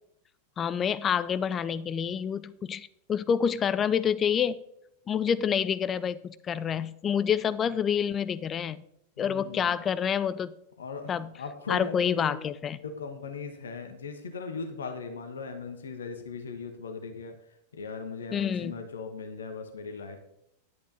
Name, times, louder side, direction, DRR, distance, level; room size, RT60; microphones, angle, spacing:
voice 1, 0.6-4.6 5.1-8.8 9.2-10.5 11.1-11.3 11.7-12.8 18.3-18.7, left 8 dB, 25° left, 14 dB, 0.5 m, -28 dB
voice 2, 9.2-9.8 10.8-12.3 12.8-17.3 17.7-20.2, left 4 dB, 70° left, 6 dB, 1.3 m, -38 dB
11.0 x 8.4 x 4.1 m, 0.78 s
figure-of-eight pair, 90°, 0 cm